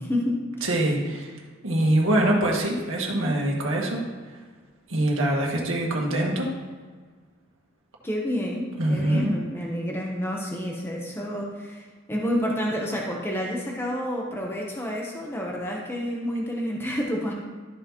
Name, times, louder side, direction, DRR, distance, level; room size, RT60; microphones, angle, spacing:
voice 1, 0.1-0.7 8.0-17.3, equal, 10° left, -2 dB, 0.9 m, -29 dB
voice 2, 0.6-1.3 1.6-4.0 4.9-6.5 8.8-9.4, right 1 dB, 90° right, -1 dB, 1.7 m, -24 dB
13.0 x 5.6 x 3.0 m, 1.5 s
head